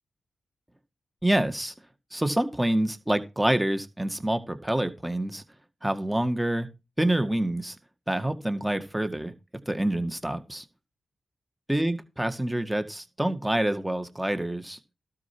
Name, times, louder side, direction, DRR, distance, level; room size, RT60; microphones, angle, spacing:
voice 1, 1.2-1.7 2.1-5.4 5.8-6.7 7.0-7.8 8.1-9.3 9.7-10.6 11.7-14.8, right 1 dB, 10° right, 1.9 m, -27 dB
12.5 x 5.7 x 6.1 m
cardioid pair, 45°, 0 cm